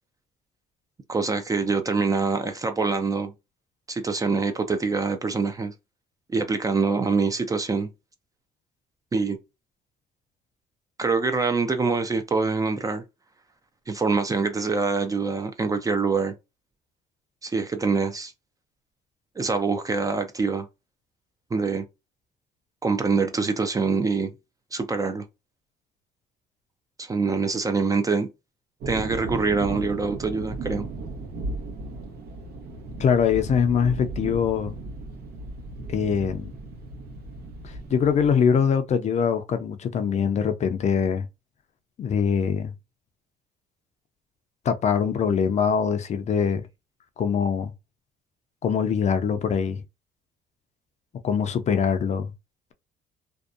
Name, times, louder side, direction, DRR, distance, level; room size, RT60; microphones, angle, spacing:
voice 1, 1.1-3.3 3.9-5.7 6.3-7.9 9.1-9.4 11.0-13.0 13.9-16.3 17.4-18.3 19.4-20.7 21.5-21.9 22.8-24.3 24.7-25.2 27.0-28.3 28.9-30.9, right 4 dB, 20° right, 0.4 m, -25 dB
sound 1, 28.8-38.3, right 2 dB, 70° right, 0.8 m, -36 dB
voice 2, 33.0-34.8 35.9-36.5 37.6-41.3 42.0-42.7 44.6-46.7 47.2-47.7 48.6-49.8 51.2-52.3, left 7 dB, 40° left, 0.5 m, -23 dB
2.6 x 2.2 x 2.4 m
cardioid pair, 110°, 17 cm